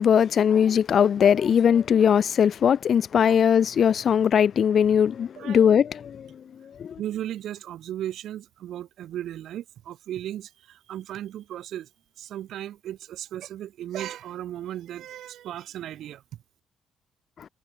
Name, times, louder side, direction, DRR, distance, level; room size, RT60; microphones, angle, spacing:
voice 1, 0.0-6.3 6.8-7.0, left 8 dB, 50° left, 0.6 m, -20 dB
voice 2, 7.0-11.9 12.2-16.2, right 12 dB, 80° right, 5.2 m, -36 dB
cardioid pair, 145°, 0 cm